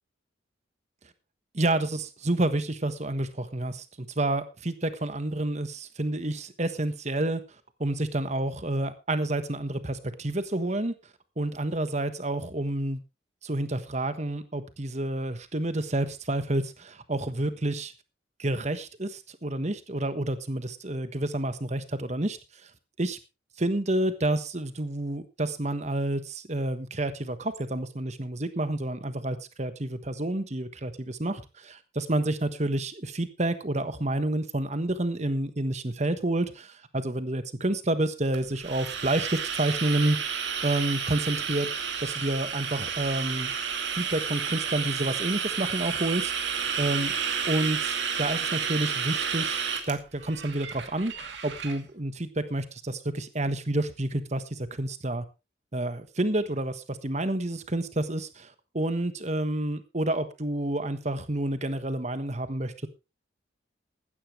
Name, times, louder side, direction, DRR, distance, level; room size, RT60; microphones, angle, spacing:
voice 1, 1.5-7.4 7.8-10.9 11.4-13.0 13.4-17.9 18.4-22.4 23.0-23.2 23.6-40.2 40.6-41.7 42.0-43.5 43.9-47.1 47.5-55.2 55.7-62.9, right 1 dB, 35° right, 11 dB, 1.3 m, -29 dB
sound 1, 38.3-51.8, right 7 dB, 65° right, 2.3 m, -31 dB
15.5 x 12.5 x 3.3 m, 0.28 s
head